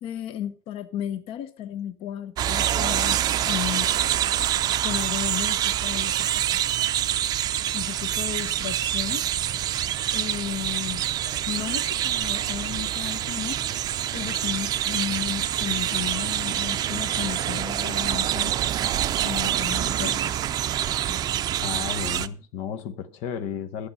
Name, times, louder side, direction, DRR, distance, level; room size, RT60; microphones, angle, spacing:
voice 1, 0.0-3.9 4.8-6.6 7.7-9.3 10.1-11.0 11.5-13.6 14.1-18.5 19.2-20.4 21.1-21.2, left 11 dB, 60° left, 1.0 m, -34 dB
sound 1, 2.4-22.3, right 11 dB, 35° right, 0.5 m, -26 dB
voice 2, 21.6-23.9, left 8 dB, 85° left, 1.0 m, -33 dB
11.5 x 8.6 x 5.5 m
cardioid pair, 175°, 11 cm